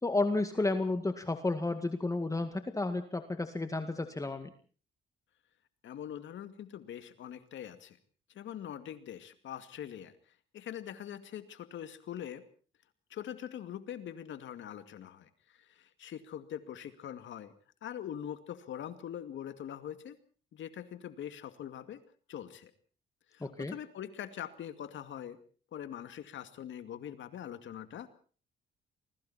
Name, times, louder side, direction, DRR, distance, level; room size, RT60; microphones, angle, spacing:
voice 1, 0.0-4.5 23.4-23.7, left 2 dB, 15° left, 8 dB, 2.0 m, -32 dB
voice 2, 5.8-8.0 8.3-10.1 10.5-12.4 13.1-17.5 17.8-20.2 20.5-22.0 22.3-22.7 23.3-25.4 25.7-28.1, left 10 dB, 70° left, 10 dB, 2.4 m, -43 dB
28.0 x 21.5 x 4.3 m, 0.42 s
cardioid pair, 90°, 20 cm